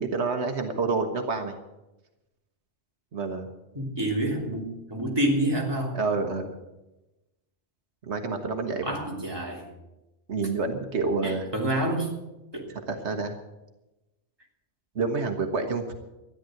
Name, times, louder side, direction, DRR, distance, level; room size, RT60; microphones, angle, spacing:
voice 1, 0.0-1.5 3.1-3.5 5.9-6.6 8.1-8.9 10.3-11.5 12.9-13.3 14.9-15.8, right 4 dB, 85° right, 5 dB, 1.6 m, -28 dB
voice 2, 3.7-6.0 8.8-9.6 11.2-12.1 12.5-12.7, right 1 dB, 20° right, -2 dB, 3.2 m, -28 dB
13.5 x 10.5 x 7.7 m, 0.98 s
omnidirectional pair, 1.1 m